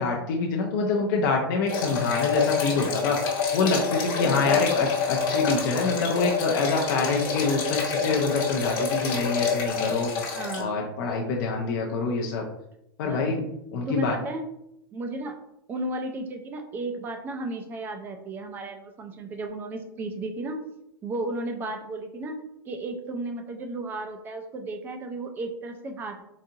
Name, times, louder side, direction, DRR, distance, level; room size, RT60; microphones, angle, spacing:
voice 1, 0.0-3.2 3.5-10.1 10.6-12.4 13.0-13.4 13.7-14.1, left 4 dB, 55° left, 0 dB, 0.5 m, -26 dB
sound 1, 1.7-10.6, left 5 dB, 35° left, 1.0 m, -27 dB
voice 2, 4.2-4.7 10.3-10.8 13.1-13.3 13.9-14.4 14.9-15.4 15.7-20.6 21.0-22.4 22.7-26.2, right 2 dB, 15° right, 5 dB, 0.4 m, -34 dB
3.9 x 2.5 x 2.7 m, 0.81 s
supercardioid pair, 155°, 12 cm